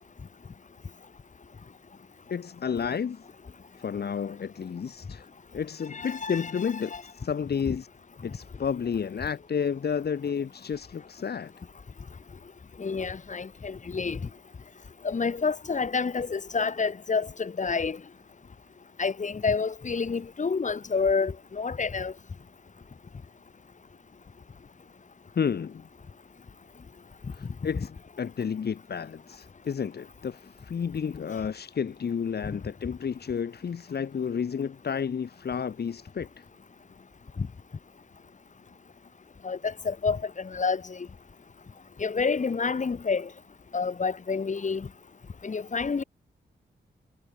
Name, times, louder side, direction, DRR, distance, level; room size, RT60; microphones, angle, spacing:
voice 1, 2.3-3.2 3.8-5.2 5.5-7.9 8.2-11.5 25.3-25.9 27.3-36.3, left 7 dB, 65° left, 3.2 m, -31 dB
voice 2, 5.9-7.0 7.7-7.8 12.8-14.2 15.0-18.0 19.0-22.1 27.7-27.9 32.4-32.6 37.4-37.5 39.4-41.1 42.0-43.3 43.7-44.9 45.4-46.0, left 5 dB, 45° left, 4.9 m, -29 dB
wide cardioid pair, 125°, 18 cm